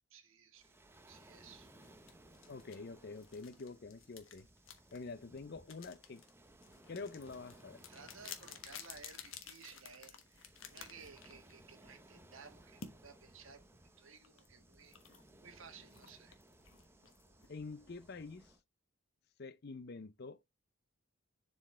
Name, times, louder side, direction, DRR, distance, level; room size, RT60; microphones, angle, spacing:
voice 1, 0.1-0.8 1.1-1.7 7.9-16.3, right 5 dB, 70° right, 1.5 m, -57 dB
Waves surf, 0.5-18.6, right 1 dB, 10° right, 0.6 m, -62 dB
sound 1, 1.8-11.7 12.8-13.0 14.2-18.1, left 8 dB, 65° left, 1.2 m, -54 dB
voice 2, 2.5-4.5 4.9-6.2 6.9-7.9 17.5-18.5 19.4-20.4, left 4 dB, 50° left, 0.5 m, -47 dB
7.3 x 4.5 x 3.3 m
head